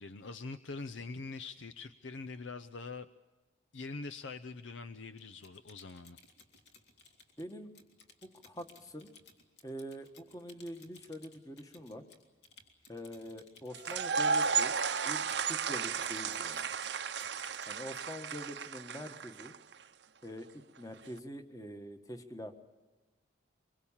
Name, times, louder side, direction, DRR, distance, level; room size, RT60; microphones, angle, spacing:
voice 1, 0.0-3.1 3.7-6.2, left 3 dB, 80° left, 11 dB, 0.7 m, -44 dB
Typing, 5.2-18.2, left 4 dB, 65° left, 3.3 m, -59 dB
voice 2, 7.4-7.8 8.2-9.1 9.6-12.0 12.9-14.7 15.0-16.7 17.7-19.5 20.2-22.5, equal, 20° left, 7 dB, 1.5 m, -45 dB
sound 1, 13.7-19.7, right 6 dB, 65° right, 0.7 m, -33 dB
24.5 x 23.5 x 7.3 m, 1.2 s
head